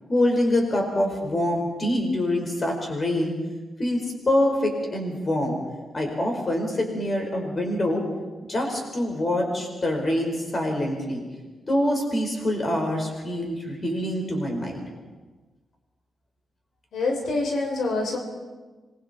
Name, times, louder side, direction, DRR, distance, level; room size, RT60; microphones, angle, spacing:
voice 1, 0.1-3.3 3.8-5.6 5.9-8.0 8.5-11.2 11.7-14.8, left 1 dB, 30° left, 1 dB, 4.7 m, -25 dB
voice 2, 16.9-18.2, left 3 dB, 80° left, 2 dB, 3.7 m, -26 dB
27.0 x 22.0 x 4.4 m, 1.3 s
wide cardioid pair, 135°, 0 cm